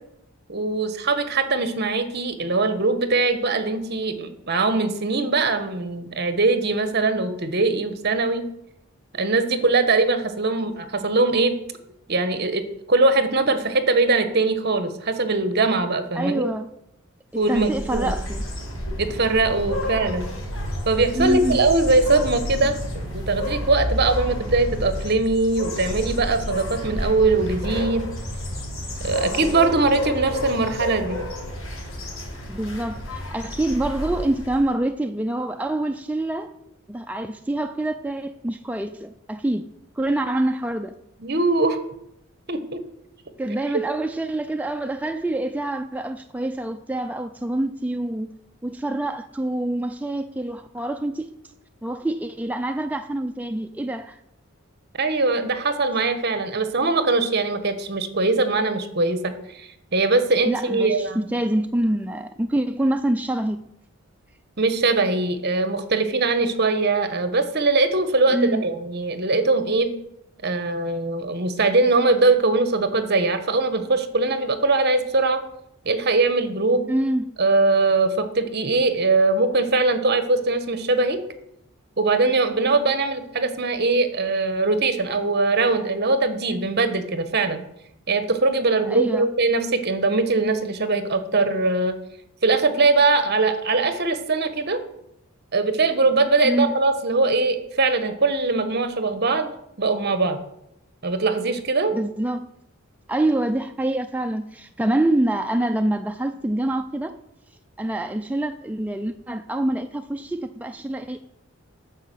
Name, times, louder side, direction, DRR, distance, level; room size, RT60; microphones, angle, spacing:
voice 1, 0.5-8.4 9.1-11.5 12.1-12.6 12.9-16.5 17.4-18.1 19.0-20.3 20.9-28.0 29.0-31.2 41.2-41.8 42.5-42.8 55.0-61.2 64.6-69.9 70.4-75.4 75.8-76.9 77.4-81.2 82.0-87.6 88.1-91.9 92.4-94.8 95.5-99.5 99.8-100.4 101.0-101.9, right 3 dB, 50° right, 10 dB, 1.1 m, -21 dB
voice 2, 16.1-16.7 17.3-18.4 21.2-21.6 32.5-36.6 36.9-39.7 40.0-40.9 43.4-48.3 48.6-51.3 51.8-54.2 60.5-63.6 68.3-68.6 76.9-77.3 88.8-89.3 96.4-96.7 101.9-102.5 103.1-107.2 107.8-111.2, right 1 dB, 5° right, 6 dB, 0.3 m, -26 dB
sound 1, 17.4-34.7, equal, 75° left, 4.3 m, -30 dB
9.7 x 6.3 x 7.5 m, 0.81 s
head